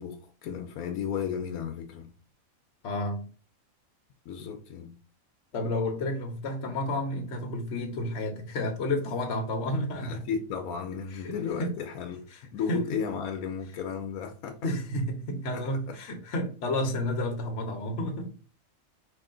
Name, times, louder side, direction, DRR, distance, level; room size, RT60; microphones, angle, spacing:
voice 1, 0.0-2.1 4.3-4.9 9.9-14.6 15.5-16.0, left 7 dB, 85° left, 1.1 m, -34 dB
voice 2, 2.8-3.3 5.5-10.2 11.2-11.3 11.6-11.7 12.7-12.8 14.6-18.4, left 1 dB, 60° left, 1.1 m, -31 dB
5.1 x 2.7 x 3.7 m
omnidirectional pair, 1.5 m